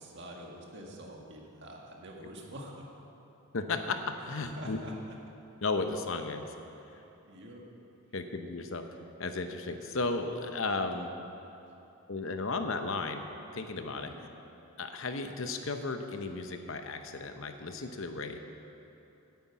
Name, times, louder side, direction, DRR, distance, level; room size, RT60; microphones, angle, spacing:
voice 1, 0.0-2.9 4.4-4.9 6.9-7.0 7.3-7.6 14.0-14.3, right 1 dB, 50° right, -1 dB, 1.8 m, -46 dB
voice 2, 3.5-4.8 5.6-6.4 8.1-8.8 9.2-11.1 12.1-13.2 13.5-14.3 14.8-18.4, left 3 dB, 60° left, 6 dB, 0.8 m, -34 dB
9.4 x 9.0 x 8.4 m, 2.9 s
head